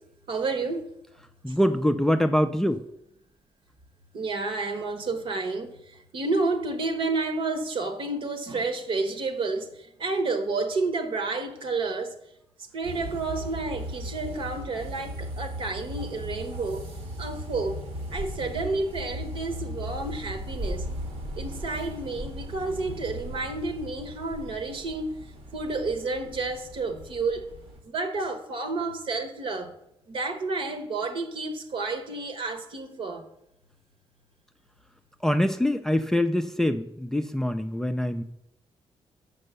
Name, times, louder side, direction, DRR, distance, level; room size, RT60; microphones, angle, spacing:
voice 1, 0.3-0.9 1.5-1.6 4.1-12.2 12.7-16.8 17.2-17.8 18.1-20.9 21.4-25.1 25.5-27.5 27.8-29.7 30.1-33.2, right 3 dB, 60° right, 1.2 m, -30 dB
voice 2, 1.4-2.8 35.2-38.2, left 1 dB, 5° left, 0.4 m, -24 dB
sound 1, 12.8-27.8, equal, 85° right, 1.8 m, -37 dB
6.7 x 5.4 x 6.7 m
cardioid pair, 120°, 10 cm